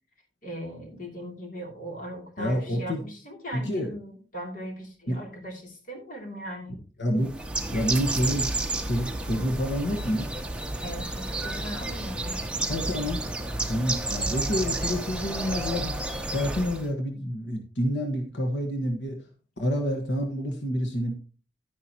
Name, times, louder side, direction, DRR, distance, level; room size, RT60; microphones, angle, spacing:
voice 1, 0.4-6.7 10.8-12.7, equal, 50° left, 1 dB, 2.9 m, -39 dB
voice 2, 2.4-3.0 3.5-3.9 5.1-5.2 7.0-7.3 7.7-8.5 8.8-10.3 12.7-13.2 13.7-19.2 19.6-21.1, equal, 85° left, 3 dB, 1.5 m, -28 dB
Bird, 7.2-16.9, right 2 dB, 5° right, 0.9 m, -31 dB
11.0 x 9.7 x 2.9 m, 0.36 s
head